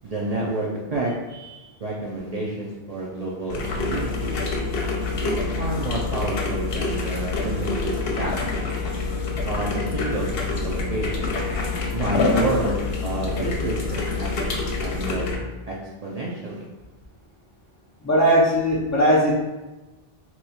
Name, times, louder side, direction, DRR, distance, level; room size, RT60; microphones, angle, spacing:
voice 1, 0.0-1.1 1.8-4.4 5.2-8.3 9.5-10.3 10.6-11.3 11.9-14.4 14.8-15.3 15.7-15.8 16.0-16.7, right 2 dB, 50° right, -4 dB, 0.5 m, -29 dB
sound 1, 3.5-15.4, left 3 dB, 70° left, 0.8 m, -26 dB
voice 2, 18.0-19.3, equal, 25° left, -9 dB, 0.4 m, -18 dB
3.0 x 2.3 x 4.1 m, 1.1 s
omnidirectional pair, 1.1 m